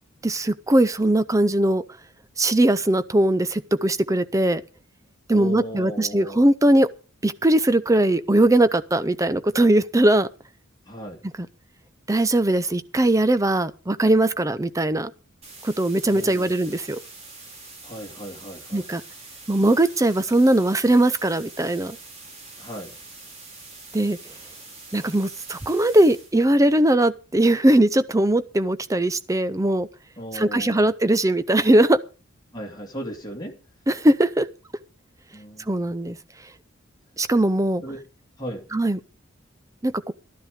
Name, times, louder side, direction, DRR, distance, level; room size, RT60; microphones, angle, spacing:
voice 1, 0.2-1.8 2.4-4.6 5.3-6.9 7.2-10.3 12.1-15.1 15.6-17.0 18.7-19.0 19.5-22.0 23.9-24.2 24.9-29.9 30.3-32.0 33.9-34.5 35.7-36.2 37.2-37.8 38.7-39.0 39.8-40.1, right 1 dB, 15° right, 0.6 m, -20 dB
voice 2, 5.3-6.4 10.8-11.2 16.1-16.5 17.8-18.9 22.6-22.9 30.2-30.9 32.5-33.6 35.3-35.9 37.8-38.0 38.4-38.7, equal, 20° left, 2.5 m, -36 dB
sound 1, 15.4-26.3, right 3 dB, 30° right, 4.3 m, -44 dB
12.0 x 12.0 x 5.1 m
head